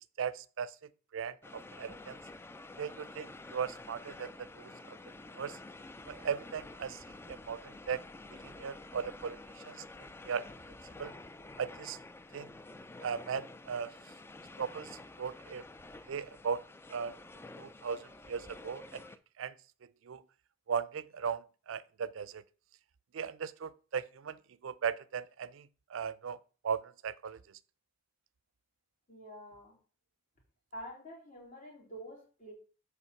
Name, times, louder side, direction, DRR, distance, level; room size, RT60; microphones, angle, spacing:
voice 1, 0.2-0.7 1.1-2.2 2.8-4.7 5.3-5.6 6.1-7.0 7.3-8.0 8.3-9.4 9.7-9.8 10.3-10.5 11.0-11.1 11.6-12.0 12.3-12.5 13.0-13.9 14.6-15.6 16.1-16.6 16.9-17.1 17.6-19.0 19.4-19.5 20.1-20.2 20.7-22.4 23.1-26.4 26.6-27.4, right 6 dB, 80° right, 0.4 m, -37 dB
sound 1, 1.4-19.2, left 2 dB, 10° left, 0.3 m, -50 dB
voice 2, 29.1-29.8 30.7-32.5, equal, 40° left, 2.6 m, -47 dB
7.6 x 3.5 x 5.6 m
head